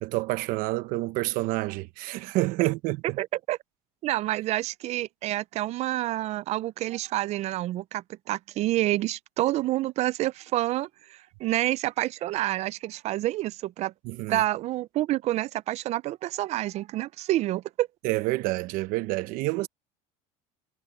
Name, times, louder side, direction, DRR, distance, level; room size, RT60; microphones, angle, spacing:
voice 1, 0.0-3.2 14.0-14.4 18.0-19.7, right 20 dB, 60° right, 0.9 m, -28 dB
voice 2, 3.2-3.6 4.0-13.9 14.3-17.9, right 15 dB, 45° right, 0.5 m, -28 dB
supercardioid pair, 125°, 16 cm